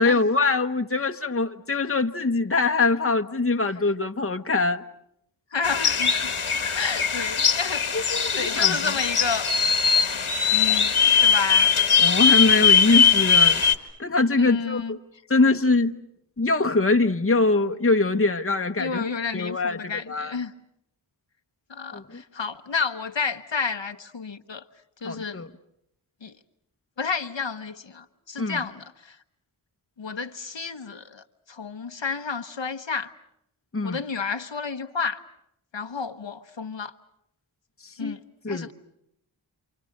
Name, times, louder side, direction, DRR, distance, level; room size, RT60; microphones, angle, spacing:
voice 1, 0.0-4.8 8.2-8.8 12.0-13.6 14.0-15.0 15.3-16.0 16.4-19.0 19.3-20.3 21.9-22.2 25.0-25.5 28.4-28.6 33.7-34.0 37.8-38.1 38.4-38.7, left 3 dB, 25° left, 1.2 m, -23 dB
voice 2, 5.5-6.3 6.7-9.5 10.5-11.7 14.4-15.0 18.8-20.5 21.7-24.7 25.0-25.4 26.2-26.3 27.0-29.2 30.0-33.1 33.8-35.2 35.7-36.9 38.0-38.2 38.5-38.7, left 5 dB, 65° left, 1.2 m, -31 dB
sound 1, 5.6-13.7, left 6 dB, 85° left, 1.8 m, -20 dB
28.5 x 27.5 x 6.6 m
wide cardioid pair, 50°, 49 cm